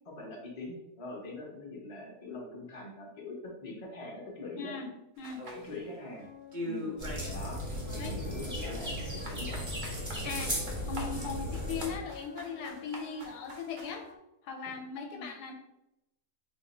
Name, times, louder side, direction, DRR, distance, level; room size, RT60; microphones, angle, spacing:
voice 1, 0.1-4.7 5.6-6.3 6.6-6.9 7.3-7.6 7.9-9.7 11.4-11.5 15.1-15.3, left 2 dB, 35° left, -2 dB, 0.6 m, -43 dB
voice 2, 4.6-4.9 5.2-5.6 8.0-8.1 10.2-14.0 14.4-15.5, left 5 dB, 75° left, 2 dB, 1.1 m, -39 dB
sound 1, 5.2-6.2 6.5-7.4 7.7-14.0, left 1 dB, 80° right, 0.4 m, -43 dB
sound 2, 6.2-14.2, left 7 dB, 55° left, 1.0 m, -51 dB
sound 3, 7.0-12.0, equal, 20° right, 0.5 m, -36 dB
2.8 x 2.5 x 4.1 m, 0.88 s
omnidirectional pair, 1.8 m